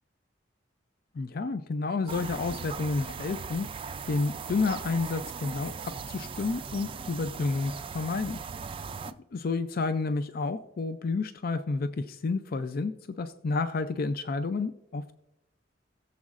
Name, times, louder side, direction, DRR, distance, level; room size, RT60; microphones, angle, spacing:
voice 1, 1.1-3.7 4.1-8.4 9.0-15.2, left 3 dB, 55° left, 11 dB, 0.4 m, -30 dB
sound 1, 2.1-9.1, right 5 dB, 30° right, 0.4 m, -39 dB
19.5 x 7.1 x 2.5 m, 0.85 s
head